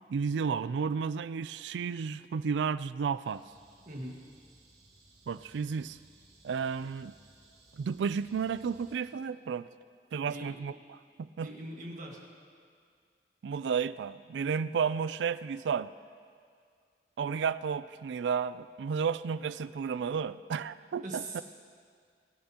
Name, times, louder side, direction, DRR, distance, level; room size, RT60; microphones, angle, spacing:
voice 1, 0.1-3.4 5.3-6.0 6.4-7.1 7.8-9.7 10.1-10.7 11.4-11.5 13.4-15.9 17.2-21.4, right 6 dB, 85° right, 15 dB, 0.3 m, -32 dB
sound 1, 3.2-9.0, right 2 dB, 65° right, 3.2 m, -60 dB
voice 2, 3.9-4.2 10.3-10.6 11.4-12.2 21.0-21.4, right 1 dB, 45° right, -1 dB, 1.8 m, -41 dB
23.0 x 11.0 x 2.9 m, 2.1 s
head